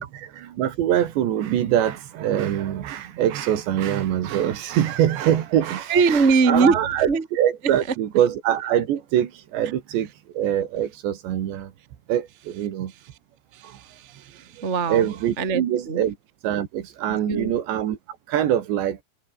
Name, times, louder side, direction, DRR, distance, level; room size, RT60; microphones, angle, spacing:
voice 1, 0.1-10.1 10.4-11.7 12.1-12.9 14.9-16.2 16.4-18.0 18.3-19.0, right 11 dB, 70° right, 4.1 m, -24 dB
voice 2, 5.9-7.3 13.5-15.1 15.4-16.0 17.1-17.5, right 4 dB, 25° right, 1.7 m, -22 dB
omnidirectional pair, 5.4 m